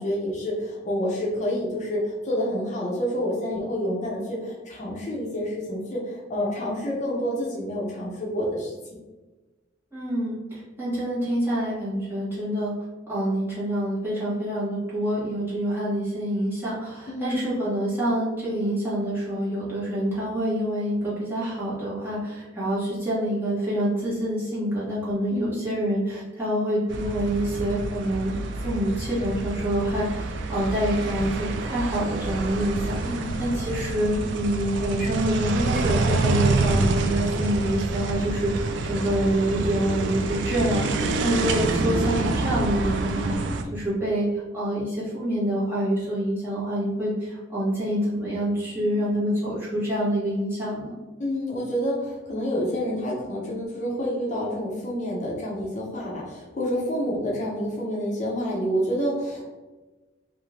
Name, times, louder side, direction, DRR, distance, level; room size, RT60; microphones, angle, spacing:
voice 1, 0.0-8.7 17.1-17.5 25.3-25.6 33.0-33.3 48.7-49.0 51.2-59.5, equal, 40° left, -4 dB, 0.5 m, -28 dB
voice 2, 9.9-12.7 13.1-50.9, right 1 dB, 15° right, -9 dB, 1.1 m, -26 dB
sound 1, 26.9-43.6, right 3 dB, 70° right, 0.3 m, -27 dB
2.6 x 2.4 x 3.1 m, 1.2 s
head